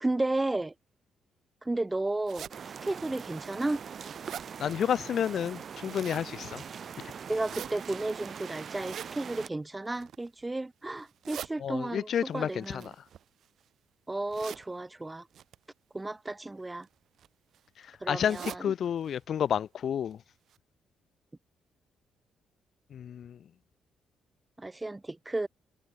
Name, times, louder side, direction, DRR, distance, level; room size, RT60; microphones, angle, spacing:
voice 1, 0.0-0.7 1.6-2.5 2.8-3.8 7.3-12.8 14.1-15.3 15.9-16.9 18.0-18.7 24.6-25.5, right 2 dB, 15° right, 0.4 m, -33 dB
sound 1, 2.2-2.5 3.2-3.3 3.7-4.5 5.6-6.3 7.2-7.7 8.7-9.1 9.9-10.3 11.0-11.5 12.6-13.6 14.3-14.6 15.3-15.6 16.6-16.8 17.2-17.3 17.5-17.6 18.2-18.6 19.0-19.2 19.4-19.5 20.1-20.2 20.5-20.6, right 9 dB, 65° right, 1.4 m, -43 dB
sound 2, 2.5-9.5, right 7 dB, 50° right, 2.6 m, -42 dB
voice 2, 4.6-6.6 11.6-12.8 18.1-20.2 22.9-23.4, left 9 dB, 60° left, 0.3 m, -30 dB
cardioid pair, 90°, 0 cm